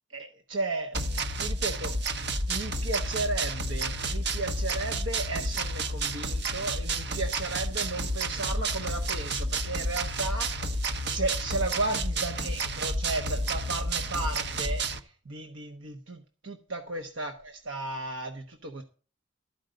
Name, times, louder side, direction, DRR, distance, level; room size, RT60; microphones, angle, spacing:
voice 1, 0.1-2.0 2.5-18.8, right 2 dB, 85° right, 5 dB, 1.1 m, -34 dB
sound 1, 0.9-15.0, right 2 dB, 60° right, 1.1 m, -30 dB
13.0 x 5.2 x 7.8 m, 0.37 s
head